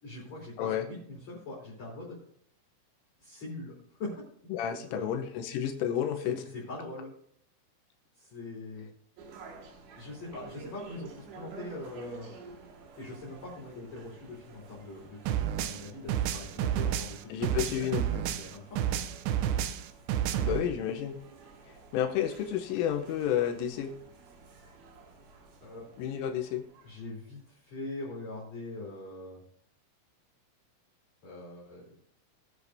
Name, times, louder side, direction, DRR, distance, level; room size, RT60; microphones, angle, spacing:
voice 1, 0.0-2.2 3.2-3.7 4.0-4.1 4.7-5.1 6.2-7.1 8.2-8.9 10.0-12.3 13.0-19.0 25.6-25.9 26.8-29.4 31.2-31.8, left 2 dB, 35° left, -5 dB, 4.1 m, -42 dB
voice 2, 4.5-6.4 17.3-18.2 20.4-21.2 21.9-23.9 26.0-26.7, left 10 dB, 80° left, 5 dB, 3.3 m, -31 dB
sound 1, 9.2-27.4, right 5 dB, 70° right, 4.0 m, -51 dB
sound 2, 15.3-18.5 18.8-20.6, right 10 dB, 90° right, 2.4 m, -30 dB
20.0 x 8.2 x 2.7 m, 0.64 s
omnidirectional pair, 5.9 m